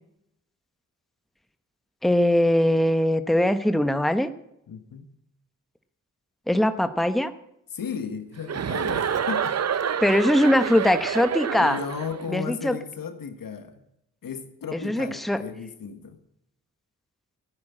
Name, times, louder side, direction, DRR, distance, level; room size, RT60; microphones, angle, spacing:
voice 1, 2.0-4.3 6.5-7.3 10.0-11.8 12.3-12.8 14.7-15.4, left 1 dB, ahead, 10 dB, 1.0 m, -21 dB
voice 2, 4.7-5.1 7.7-9.6 11.6-13.8 14.2-16.2, left 6 dB, 85° left, 8 dB, 1.7 m, -35 dB
Chuckle chortle, 8.5-12.2, right 7 dB, 50° right, 0.7 m, -28 dB
14.0 x 9.6 x 7.6 m, 0.80 s
cardioid pair, 60°, 33 cm